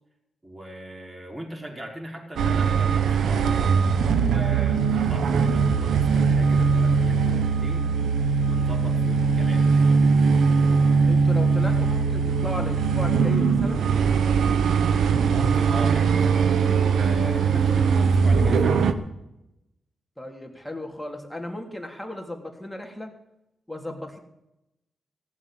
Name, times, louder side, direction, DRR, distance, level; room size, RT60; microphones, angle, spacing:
voice 1, 0.4-3.6 4.2-7.9 8.4-9.7 15.3-18.9, right 1 dB, 25° right, 0 dB, 5.2 m, -39 dB
sound 1, 2.4-18.9, right 5 dB, 80° right, 0.9 m, -21 dB
voice 2, 11.1-13.8 20.2-23.1 23.7-24.2, left 1 dB, 5° left, 2 dB, 3.3 m, -35 dB
16.0 x 7.4 x 9.2 m, 0.89 s
supercardioid pair, 50°, 0 cm